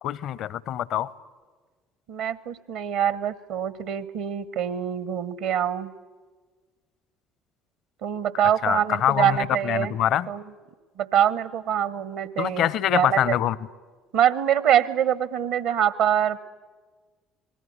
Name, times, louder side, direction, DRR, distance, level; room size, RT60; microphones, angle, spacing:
voice 1, 0.0-1.1 8.6-10.3 12.4-13.6, left 11 dB, 55° left, 23 dB, 0.7 m, -24 dB
voice 2, 2.1-5.9 8.0-9.9 10.3-10.4 11.0-13.3 14.1-16.4, right 10 dB, 65° right, 19 dB, 1.0 m, -24 dB
26.5 x 20.0 x 9.5 m, 1.5 s
figure-of-eight pair, 55°, 0 cm